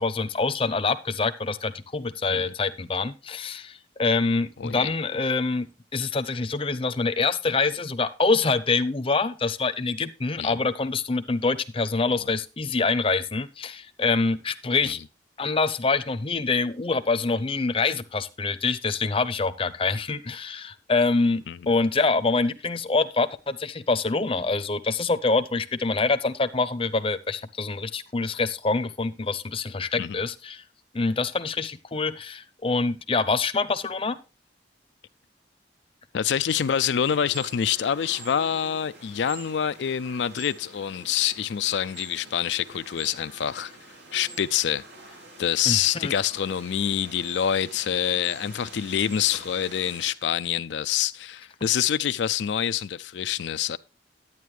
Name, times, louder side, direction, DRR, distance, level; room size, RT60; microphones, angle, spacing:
voice 1, 0.0-5.7 5.9-15.0 15.4-30.6 30.9-34.2 45.7-46.1, left 3 dB, 30° left, 0.7 m, -25 dB
voice 2, 36.1-43.7 44.1-44.8 45.4-53.8, left 9 dB, 80° left, 0.4 m, -26 dB
sound 1, 36.5-50.1, right 2 dB, 85° right, 3.3 m, -46 dB
11.0 x 9.3 x 3.2 m
head